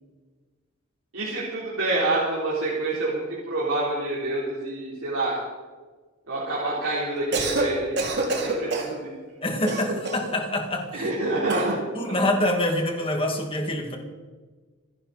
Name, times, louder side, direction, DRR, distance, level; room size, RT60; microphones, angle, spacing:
voice 1, 1.1-5.4 6.3-8.0 8.3-9.1 10.9-12.2, right 2 dB, 80° right, -6 dB, 3.7 m, -27 dB
Cough, 7.2-7.7 8.0-8.9 9.7-10.3 11.5-11.8, right 2 dB, 55° right, 2.7 m, -27 dB
voice 2, 9.4-11.1 11.9-14.0, left 1 dB, 25° left, 3 dB, 2.1 m, -26 dB
26.5 x 10.0 x 4.2 m, 1.4 s
head